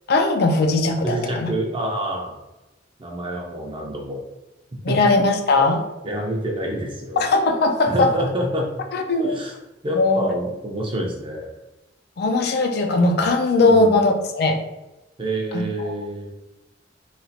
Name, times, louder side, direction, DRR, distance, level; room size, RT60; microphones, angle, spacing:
voice 1, 0.1-1.5 4.8-5.8 7.2-8.1 8.9-9.4 10.0-10.2 12.2-14.6 15.5-15.6, left 2 dB, 55° left, 4 dB, 0.4 m, -19 dB
voice 2, 1.0-2.4 3.0-4.2 4.9-5.0 6.0-7.3 7.9-8.7 9.2-9.6 9.8-11.5 13.6-13.9 15.2-16.3, equal, 25° right, 0 dB, 0.6 m, -27 dB
3.1 x 2.4 x 2.7 m, 1.0 s
head